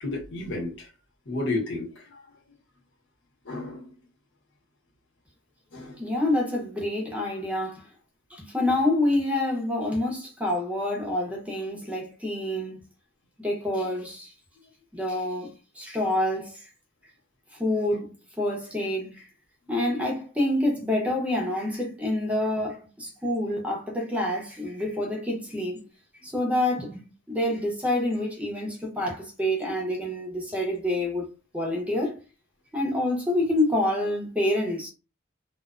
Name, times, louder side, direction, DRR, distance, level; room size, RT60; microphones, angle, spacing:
voice 1, 0.0-0.9 1.3-2.2 3.4-3.9 5.7-6.0, left 2 dB, 65° left, 1.0 m, -32 dB
voice 2, 6.0-7.9 8.3-12.8 13.4-14.3 14.9-16.6 17.6-19.3 19.7-25.9 26.2-31.3 31.5-32.2 32.7-34.9, left 1 dB, 5° right, 0.7 m, -27 dB
2.5 x 2.3 x 2.3 m
head